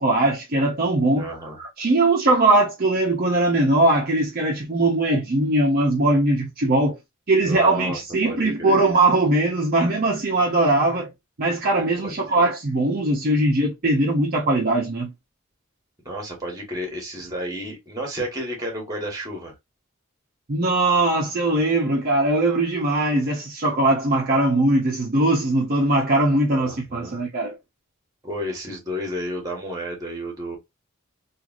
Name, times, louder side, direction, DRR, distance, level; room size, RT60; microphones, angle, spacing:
voice 1, 0.0-1.3 1.6-7.0 7.3-11.1 11.4-15.1 20.5-27.6, right 2 dB, 45° right, 0.6 m, -20 dB
voice 2, 1.1-1.6 7.3-8.0 8.2-8.9 12.0-12.1 16.0-19.5 26.5-27.1 28.2-30.6, equal, 20° right, 1.2 m, -31 dB
3.1 x 2.5 x 2.4 m
head